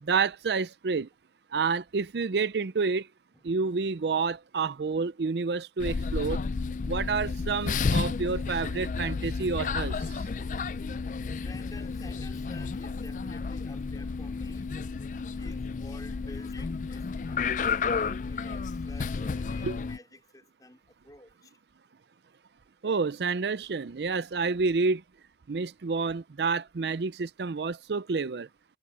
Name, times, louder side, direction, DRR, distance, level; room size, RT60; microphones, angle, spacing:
voice 1, 0.0-1.1 1.5-3.1 3.4-6.4 6.9-10.3 19.6-19.8 22.8-25.0 25.5-28.5, right 4 dB, 75° right, 0.5 m, -29 dB
sound 1, 5.8-20.0, left 4 dB, 45° left, 0.4 m, -32 dB
voice 2, 11.3-14.8 15.4-17.7 18.0-21.6, left 1 dB, 20° left, 4.5 m, -51 dB
head